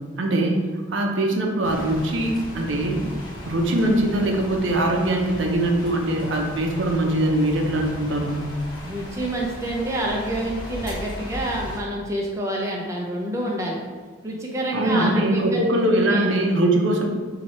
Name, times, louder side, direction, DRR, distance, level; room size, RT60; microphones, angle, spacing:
voice 1, 0.2-0.6 0.9-3.1 3.4-8.5 14.7-17.1, right 1 dB, 70° right, 1 dB, 0.6 m, -22 dB
sound 1, 1.6-11.8, equal, 25° left, 1.0 m, -37 dB
voice 2, 8.8-13.8 14.2-15.6 16.1-16.3, right 1 dB, 15° right, -2 dB, 0.5 m, -27 dB
4.4 x 2.8 x 4.2 m, 1.5 s
head